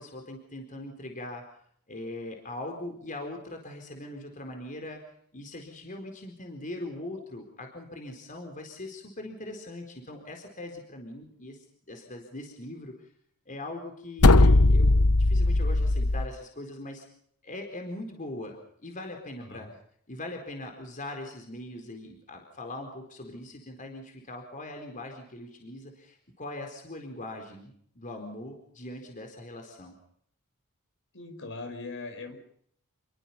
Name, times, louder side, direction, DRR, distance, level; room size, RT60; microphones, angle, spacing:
voice 1, 0.0-1.5 1.9-5.0 5.3-11.6 11.9-13.1 13.5-17.1 17.4-18.6 18.8-19.7 20.1-30.0, left 1 dB, 35° left, 4 dB, 4.3 m, -41 dB
sound 1, 14.2-16.3, left 2 dB, 80° left, 1.1 m, -19 dB
voice 2, 19.4-19.7 31.1-32.4, left 3 dB, 60° left, 7 dB, 5.5 m, -40 dB
28.5 x 23.0 x 5.7 m, 0.65 s
head